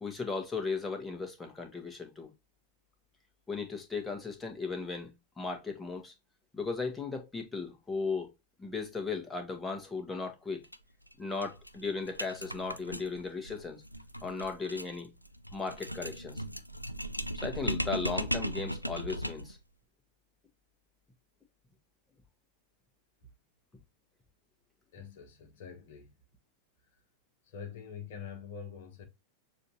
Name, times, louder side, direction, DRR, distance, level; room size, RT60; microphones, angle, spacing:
voice 1, 0.0-2.3 3.5-6.1 6.5-8.3 8.6-10.6 11.2-13.8 14.2-15.1 15.5-16.4 17.3-19.6, left 4 dB, 10° left, 1.4 m, -36 dB
sound 1, 10.6-10.8 11.1-11.2 11.4-19.6, equal, 90° left, 0.3 m, -37 dB
voice 2, 24.9-26.2 27.5-29.0, left 7 dB, 55° left, 1.1 m, -45 dB
6.7 x 2.8 x 2.7 m
figure-of-eight pair, 90°, 0 cm